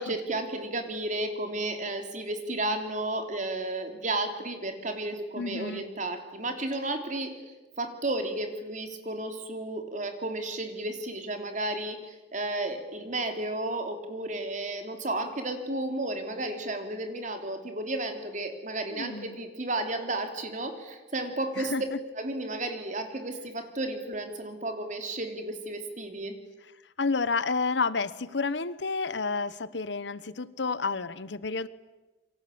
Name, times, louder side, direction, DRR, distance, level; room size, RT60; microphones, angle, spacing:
voice 1, 0.0-7.3 7.8-21.9 22.2-26.3, right 2 dB, 40° right, 6 dB, 3.4 m, -33 dB
voice 2, 5.4-5.8 18.9-19.4 21.6-22.0 27.0-31.7, left 4 dB, 70° left, 16 dB, 1.1 m, -30 dB
28.5 x 23.5 x 8.7 m, 1.1 s
head